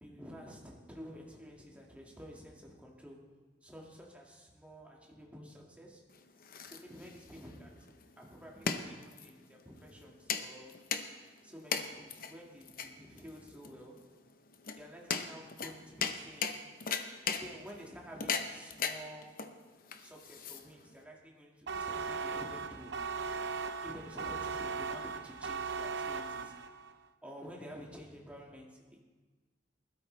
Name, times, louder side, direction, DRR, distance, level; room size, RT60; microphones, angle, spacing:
voice 1, 0.0-3.3 3.6-6.0 6.7-7.8 8.2-10.8 11.4-14.3 14.8-16.7 17.4-19.5 20.0-23.5 23.8-26.6 27.2-29.0, equal, 10° right, -2 dB, 2.0 m, -50 dB
sound 1, 6.1-21.0, left 6 dB, 55° left, 0.8 m, -39 dB
sound 2, 21.7-26.9, right 5 dB, 70° right, 0.7 m, -38 dB
19.5 x 12.5 x 3.3 m, 1.3 s
head